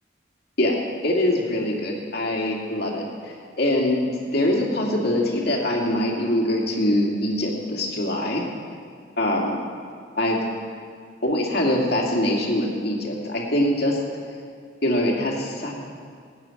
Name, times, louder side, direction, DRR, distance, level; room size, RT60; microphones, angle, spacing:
voice 1, 1.0-8.4 9.2-9.6 10.2-10.4 11.2-14.0 14.8-15.8, left 1 dB, 60° left, -1 dB, 2.5 m, -23 dB
18.5 x 9.6 x 5.9 m, 2.2 s
head